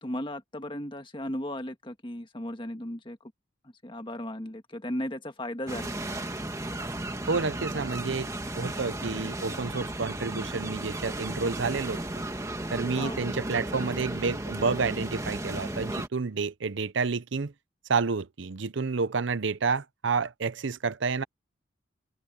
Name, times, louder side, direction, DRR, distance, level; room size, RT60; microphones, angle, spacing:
voice 1, 0.0-3.2 3.8-6.0 12.9-13.2, left 1 dB, 25° left, 1.6 m, -36 dB
sound 1, 5.7-16.1, right 1 dB, 15° right, 1.8 m, -34 dB
voice 2, 7.3-8.3 8.5-12.0 12.7-17.5 17.9-21.2, right 4 dB, 70° right, 0.7 m, -29 dB
head